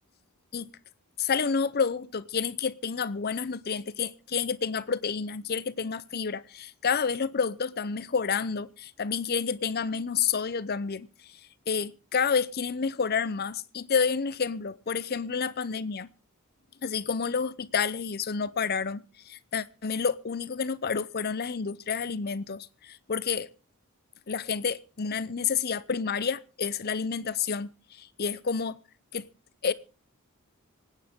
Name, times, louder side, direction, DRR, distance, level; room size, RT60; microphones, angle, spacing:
voice 1, 1.2-11.1 11.7-16.1 16.8-23.5 24.3-28.8 29.1-29.3 29.6-29.7, left 6 dB, 45° left, 0.7 m, -29 dB
26.0 x 9.4 x 3.7 m
head